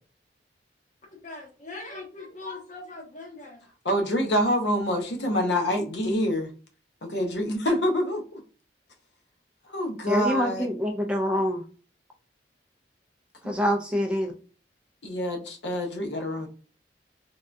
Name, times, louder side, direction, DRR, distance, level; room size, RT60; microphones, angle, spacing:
voice 1, 1.2-3.6, left 2 dB, 45° left, 1.0 m, -40 dB
voice 2, 3.8-6.5 7.0-8.4 9.7-10.7 13.4-13.6 15.0-16.5, equal, 70° left, 0.7 m, -26 dB
voice 3, 10.1-11.6 13.4-14.3, equal, 5° right, 0.3 m, -25 dB
3.5 x 2.2 x 2.5 m
head